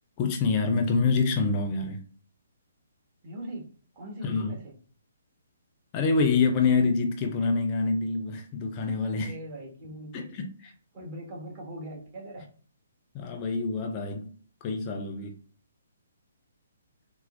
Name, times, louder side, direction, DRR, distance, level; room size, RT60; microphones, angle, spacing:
voice 1, 0.2-2.0 4.2-4.5 5.9-9.3 10.1-10.5 13.1-14.3 14.6-15.4, left 4 dB, 30° left, 0.4 m, -26 dB
voice 2, 3.2-3.7 3.9-4.7 9.1-10.2 10.6-12.5, right 1 dB, 35° right, 1.3 m, -41 dB
4.3 x 2.0 x 2.5 m
figure-of-eight pair, 135°, 0 cm